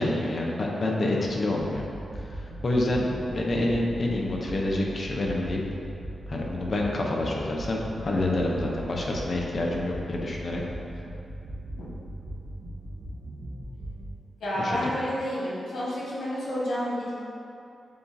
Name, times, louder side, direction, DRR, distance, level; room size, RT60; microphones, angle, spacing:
voice 1, 0.0-1.8 2.2-5.6 6.3-10.6 14.6-15.0, left 1 dB, 45° left, -1 dB, 0.6 m, -27 dB
sound 1, 1.6-14.2, right 1 dB, 80° right, 0.9 m, -39 dB
voice 2, 14.4-17.1, equal, 90° left, -8 dB, 1.3 m, -30 dB
6.8 x 2.4 x 2.6 m, 2.6 s
wide cardioid pair, 95°, 0 cm